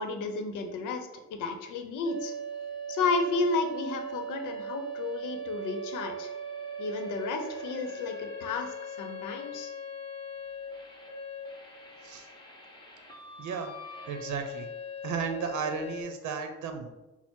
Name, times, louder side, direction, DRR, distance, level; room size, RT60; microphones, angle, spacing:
voice 1, 0.0-2.3 2.9-6.3 6.8-9.7, left 3 dB, 85° left, 6 dB, 0.7 m, -32 dB
sound 1, 2.0-16.0, right 1 dB, 15° left, 1.1 m, -40 dB
voice 2, 13.4-13.7 14.1-14.7 15.0-16.9, right 6 dB, 75° right, 6 dB, 0.7 m, -34 dB
5.8 x 2.0 x 4.4 m, 1.1 s
cardioid pair, 90°, 30 cm